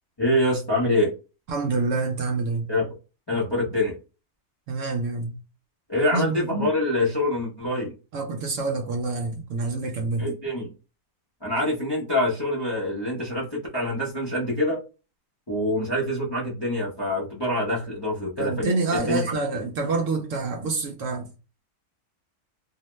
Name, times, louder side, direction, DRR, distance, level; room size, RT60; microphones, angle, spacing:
voice 1, 0.2-1.1 2.7-2.9 3.3-4.0 5.9-7.9 10.2-10.7 11.4-14.8 15.5-18.5 18.9-19.3, left 1 dB, 35° left, 0.4 m, -25 dB
voice 2, 1.5-2.6 4.7-5.4 6.1-6.7 8.1-10.3 18.4-21.3, right 3 dB, 70° right, 0.8 m, -27 dB
2.7 x 2.1 x 3.0 m
omnidirectional pair, 1.6 m